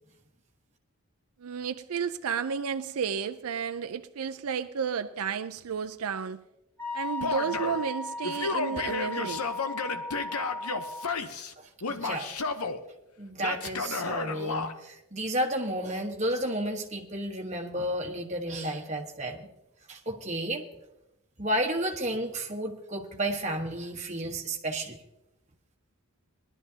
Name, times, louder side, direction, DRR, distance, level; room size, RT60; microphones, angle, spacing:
voice 1, 1.4-6.4 6.9-9.4, right 6 dB, 85° right, 0.5 m, -32 dB
Wind instrument woodwind instrument, 6.8-11.2, left 2 dB, 5° left, 2.4 m, -36 dB
Male speech man speaking / Yell, 7.2-7.8 8.2-11.5 11.8-12.8 13.4-14.7, left 4 dB, 80° left, 0.9 m, -32 dB
voice 2, 11.6-12.3 13.2-19.5 19.9-20.6 21.4-25.0, right 1 dB, 30° right, 1.3 m, -32 dB
20.5 x 12.0 x 2.8 m
head